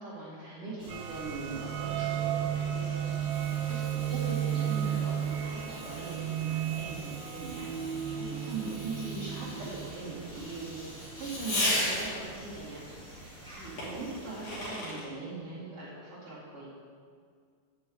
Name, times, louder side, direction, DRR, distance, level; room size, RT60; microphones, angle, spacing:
voice 1, 0.0-10.8 11.1-16.7, right 3 dB, 40° right, -8 dB, 2.5 m, -41 dB
sound 1, 0.8-14.7, right 1 dB, 5° left, 0.4 m, -48 dB
sound 2, 0.9-12.2, right 10 dB, 90° right, 2.1 m, -34 dB
Fireworks, 2.4-12.4 13.8-15.1, left 1 dB, 45° left, 3.9 m, -38 dB
8.6 x 5.5 x 7.8 m, 2.1 s
omnidirectional pair, 5.0 m